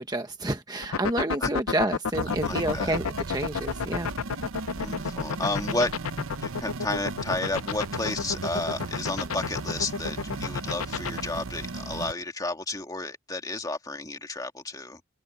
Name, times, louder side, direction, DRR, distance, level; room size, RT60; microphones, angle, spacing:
voice 1, 0.0-4.1, right 1 dB, 20° right, 1.1 m, -29 dB
sound 1, 0.8-11.2, left 5 dB, 85° left, 0.6 m, -29 dB
sound 2, 2.1-12.1, right 3 dB, 75° right, 0.9 m, -37 dB
voice 2, 2.5-3.0 4.7-5.9 6.4-15.0, left 2 dB, 15° left, 2.2 m, -32 dB
head